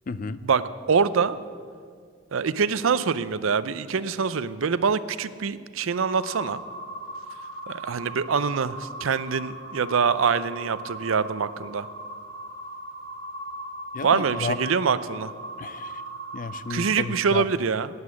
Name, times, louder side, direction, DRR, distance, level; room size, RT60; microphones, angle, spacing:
voice 1, 0.1-0.4 13.9-14.6 15.6-16.0 16.3-17.5, left 4 dB, 40° left, 15 dB, 0.4 m, -32 dB
voice 2, 0.9-1.4 2.3-6.6 7.7-11.9 14.0-15.3 16.7-17.9, right 6 dB, 80° right, 15 dB, 0.5 m, -24 dB
sound 1, 6.0-17.0, right 1 dB, 45° right, 3.1 m, -38 dB
11.0 x 9.6 x 8.4 m, 2.1 s
head